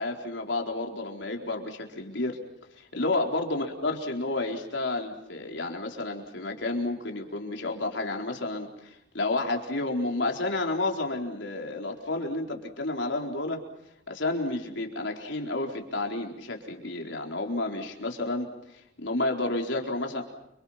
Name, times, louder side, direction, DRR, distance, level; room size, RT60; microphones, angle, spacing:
voice 1, 0.0-2.4 2.8-13.6 14.1-18.5 19.0-20.2, left 2 dB, 80° left, 2 dB, 4.3 m, -31 dB
29.5 x 26.0 x 5.8 m, 0.82 s
head